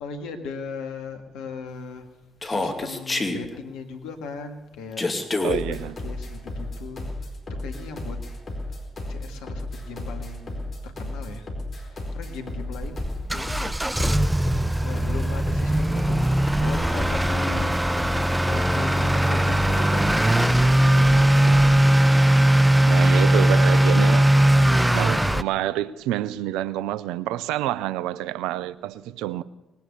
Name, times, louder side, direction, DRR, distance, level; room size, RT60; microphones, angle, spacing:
voice 1, 0.0-2.1 2.5-5.3 5.7-8.2 9.1-11.5 11.8-13.8 14.8-17.8 18.5-22.0, left 4 dB, 75° left, 1.8 m, -38 dB
Human voice, 2.4-3.4 5.0-5.6, left 2 dB, 25° left, 2.4 m, -26 dB
voice 2, 5.4-5.9 22.9-29.4, right 13 dB, 75° right, 0.5 m, -28 dB
sound 1, 5.5-21.8, left 1 dB, 45° left, 4.6 m, -34 dB
Motor vehicle (road) / Accelerating revving vroom, 12.7-25.4, right 1 dB, 10° right, 0.6 m, -19 dB
20.0 x 10.5 x 6.8 m
hypercardioid pair, 45°, 0 cm